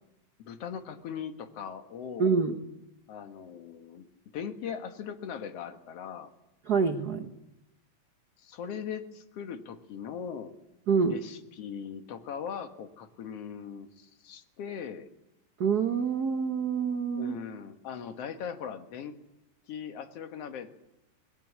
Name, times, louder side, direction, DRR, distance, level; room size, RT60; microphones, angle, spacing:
voice 1, 0.4-2.4 3.1-4.0 4.3-6.3 8.4-10.5 11.0-15.1 17.1-19.1 19.7-20.8, left 7 dB, 55° left, 7 dB, 2.4 m, -39 dB
voice 2, 2.2-2.6 6.7-7.3 10.9-11.2 15.6-17.4, right 5 dB, 85° right, 6 dB, 0.8 m, -26 dB
20.5 x 18.5 x 8.5 m, 0.89 s
omnidirectional pair, 3.5 m